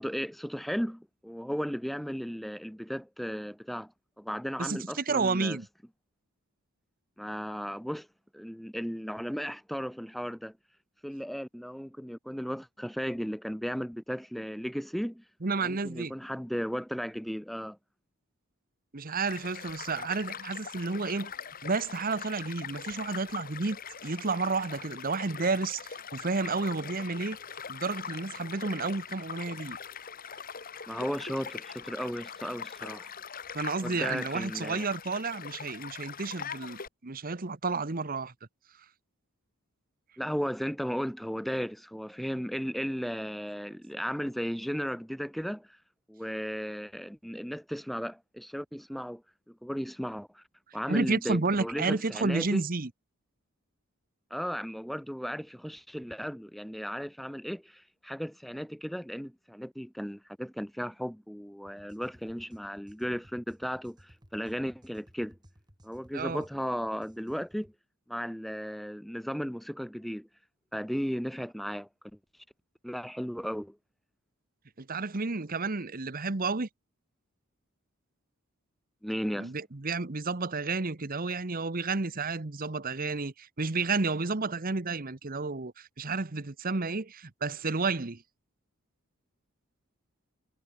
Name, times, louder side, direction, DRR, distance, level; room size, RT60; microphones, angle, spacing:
voice 1, 0.0-5.6 7.2-8.1 8.3-10.5 11.0-15.2 15.6-17.8 30.9-33.1 33.8-34.8 40.2-45.8 46.1-49.2 49.5-50.4 50.7-52.6 54.3-65.4 65.8-67.7 68.1-70.3 70.7-71.9 72.8-73.8 79.0-79.5, equal, ahead, 0.7 m, -35 dB
voice 2, 4.6-5.7 15.4-16.1 18.9-21.3 21.6-27.4 27.7-29.8 33.5-38.3 50.9-52.9 66.1-66.4 74.8-76.7 79.4-88.2, right 3 dB, 40° right, 1.1 m, -31 dB
Child speech kid speaking / Stream / Car passing by, 19.3-36.9, left 7 dB, 40° left, 1.7 m, -42 dB
sound 1, 61.7-67.8, equal, 20° right, 6.9 m, -59 dB
head